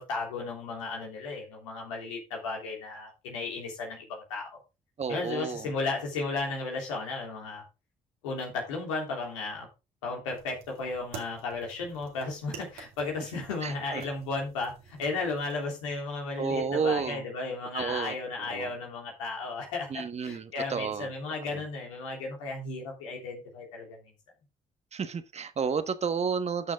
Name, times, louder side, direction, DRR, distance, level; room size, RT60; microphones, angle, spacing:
voice 1, 0.0-4.6 5.1-7.6 8.2-9.7 10.0-24.0, left 3 dB, 90° left, 3.2 m, -34 dB
voice 2, 5.0-5.7 13.6-14.0 16.4-17.2 17.7-18.1 18.5-18.7 19.9-21.1 24.9-26.7, right 6 dB, 45° right, 1.3 m, -31 dB
sound 1, 10.3-15.5, right 7 dB, 75° right, 2.4 m, -49 dB
13.0 x 6.3 x 3.6 m
hypercardioid pair, 50°, 16 cm